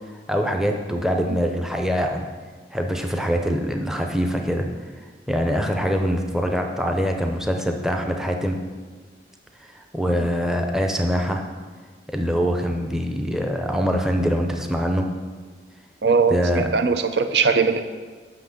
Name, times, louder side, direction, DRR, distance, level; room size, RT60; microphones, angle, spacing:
voice 1, 0.3-2.3 2.7-4.7 5.3-8.6 9.7-11.5 12.1-15.1 16.3-16.7, equal, 5° right, 3 dB, 0.6 m, -23 dB
voice 2, 16.0-17.8, right 5 dB, 70° right, 9 dB, 0.6 m, -20 dB
5.9 x 5.8 x 7.0 m, 1.5 s
head